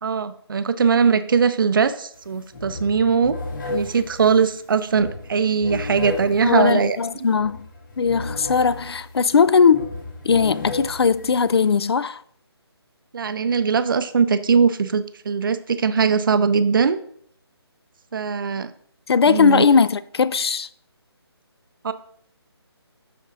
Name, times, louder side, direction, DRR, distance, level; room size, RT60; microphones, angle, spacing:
voice 1, 0.0-3.4 3.7-7.0 13.1-17.0 18.1-18.7 19.3-19.6 21.8-21.9, right 6 dB, 50° right, 0.5 m, -20 dB
sound 1, 2.1-2.3 2.5-11.8, left 3 dB, 45° left, 1.9 m, -34 dB
voice 2, 6.4-7.7 8.0-9.9 10.2-12.2 19.1-20.7, left 5 dB, 70° left, 0.4 m, -19 dB
11.5 x 4.3 x 2.6 m
figure-of-eight pair, 160°, 14 cm